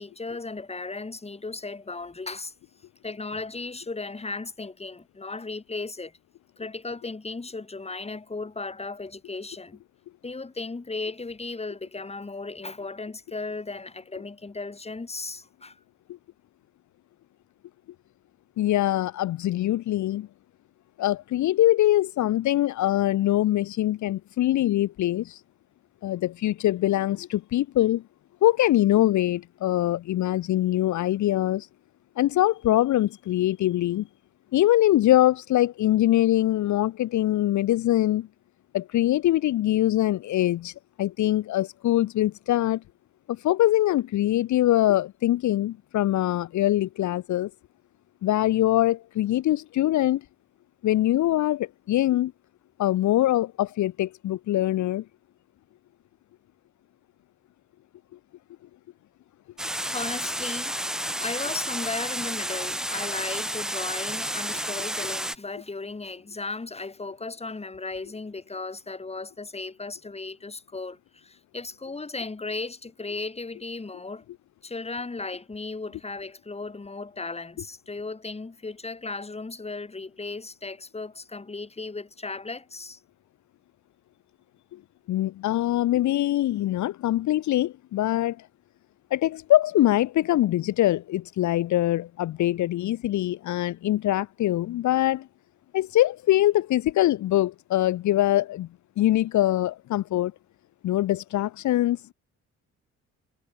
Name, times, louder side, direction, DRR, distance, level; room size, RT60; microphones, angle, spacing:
voice 1, 0.0-2.5 3.0-6.1 6.6-9.8 10.2-15.8 59.7-60.8 61.2-74.2 74.6-83.0, left 3 dB, 20° left, 3.2 m, -36 dB
voice 2, 18.6-20.3 21.0-25.4 26.0-28.0 28.4-31.7 32.2-34.1 34.5-38.3 38.7-40.7 41.0-42.8 43.3-47.5 48.2-50.2 50.8-52.3 52.8-55.0 85.1-88.5 89.1-95.3 95.7-98.7 99.0-100.3 100.8-102.1, left 14 dB, 70° left, 0.9 m, -23 dB
sound 1, 59.6-65.3, right 1 dB, ahead, 0.3 m, -31 dB
cardioid pair, 90°, 30 cm